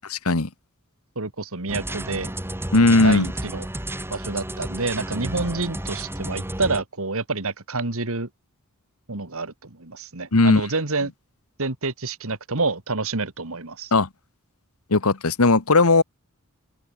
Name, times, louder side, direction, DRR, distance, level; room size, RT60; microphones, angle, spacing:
voice 1, 1.2-2.3 3.0-3.7 4.1-8.3 9.1-11.1 11.6-13.9, right 3 dB, 65° right, 2.4 m, -28 dB
sound 1, 1.7-6.8, right 1 dB, 10° right, 2.7 m, -32 dB
voice 2, 2.7-3.3 10.3-10.6 13.9-14.1 14.9-16.0, left 3 dB, 75° left, 1.4 m, -17 dB
open air
head